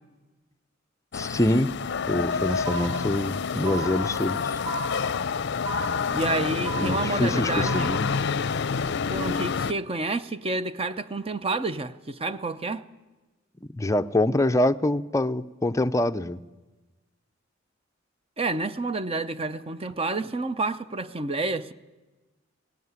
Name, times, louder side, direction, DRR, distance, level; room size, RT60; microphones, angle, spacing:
sound 1, 1.1-9.7, left 5 dB, 60° left, 0.6 m, -28 dB
voice 1, 1.1-1.7 2.1-4.6 6.8-8.2 13.7-16.4, left 1 dB, 15° left, 0.6 m, -25 dB
sound 2, 2.6-3.3 3.6-4.3 4.6-5.3 5.6-6.3 6.6-7.3 7.6-8.2, right 5 dB, 15° right, 4.7 m, -35 dB
voice 2, 6.1-7.9 9.1-12.8 18.4-21.7, right 3 dB, 30° right, 0.7 m, -29 dB
18.5 x 16.5 x 9.6 m
head